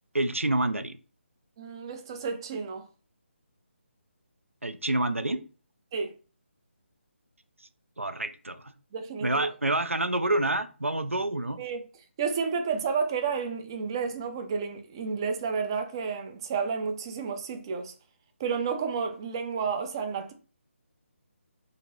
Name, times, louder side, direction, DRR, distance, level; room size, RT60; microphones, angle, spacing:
voice 1, 0.1-1.0 4.6-5.4 8.0-8.7 9.2-11.6, right 1 dB, 90° right, 0.4 m, -28 dB
voice 2, 1.6-2.8 5.9-6.1 8.9-9.5 11.6-11.8 12.2-17.9 18.4-20.3, right 5 dB, 20° right, 0.3 m, -31 dB
2.8 x 2.5 x 3.0 m
figure-of-eight pair, 150°, 7 cm